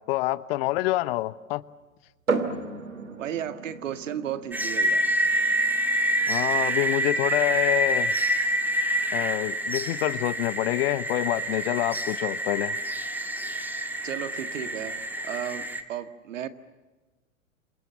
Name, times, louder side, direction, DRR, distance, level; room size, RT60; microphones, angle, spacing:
voice 1, 0.1-1.6 6.3-8.1 9.1-12.8, left 18 dB, 45° left, 18 dB, 1.0 m, -27 dB
sound 1, 2.3-15.8, right 4 dB, 85° right, 2.7 m, -38 dB
voice 2, 3.2-5.0 14.0-14.9 15.2-16.5, right 10 dB, 65° right, 10 dB, 1.9 m, -34 dB
sound 2, 4.5-15.8, right 1 dB, 5° right, 2.0 m, -27 dB
28.5 x 27.0 x 7.0 m, 1.2 s
figure-of-eight pair, 100°, 40 cm